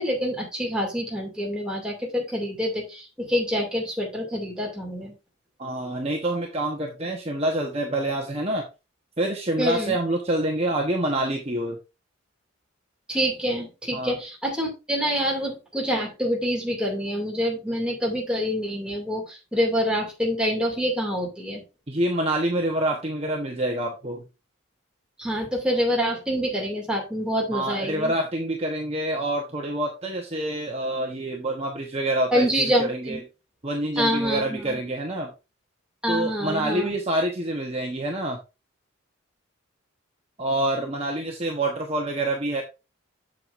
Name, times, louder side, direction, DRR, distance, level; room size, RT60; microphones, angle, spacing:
voice 1, 0.0-5.1 9.6-10.0 13.1-21.6 25.2-28.1 32.3-33.2 34.0-34.8 36.0-36.9, equal, 5° right, -1 dB, 2.3 m, -26 dB
voice 2, 5.6-8.6 9.2-11.8 13.9-14.1 21.9-24.2 27.5-33.2 33.6-35.3 36.1-38.4 40.4-42.6, right 1 dB, 30° right, 1 dB, 1.0 m, -27 dB
7.6 x 7.4 x 2.5 m, 0.27 s
head